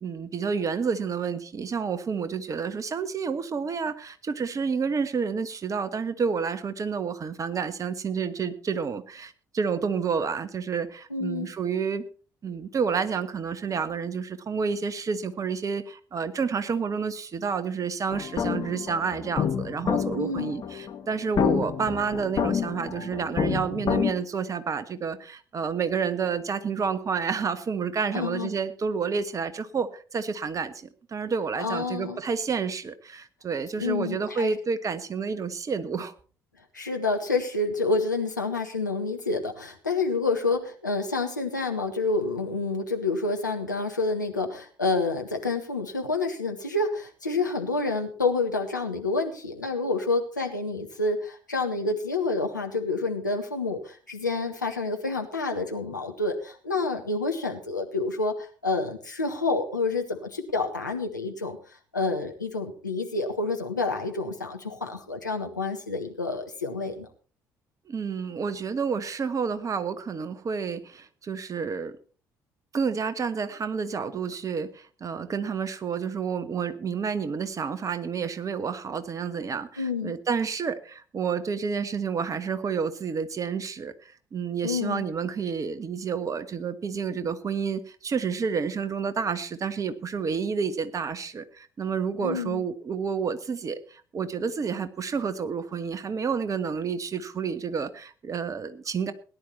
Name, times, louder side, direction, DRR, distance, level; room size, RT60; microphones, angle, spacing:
voice 1, 0.0-12.0 12.4-36.1 67.9-72.0 72.7-83.9 84.3-99.1, right 6 dB, 35° right, 13 dB, 1.4 m, -29 dB
voice 2, 11.1-11.5 20.2-20.5 28.1-28.5 31.6-32.2 33.8-34.5 36.7-61.6 61.9-67.1 79.8-80.1 84.6-85.0 92.2-92.6, left 3 dB, 85° left, 3 dB, 1.6 m, -28 dB
sound 1, 18.1-24.1, left 8 dB, 40° left, 1.8 m, -28 dB
18.0 x 10.5 x 4.3 m, 0.39 s
figure-of-eight pair, 50°, 10 cm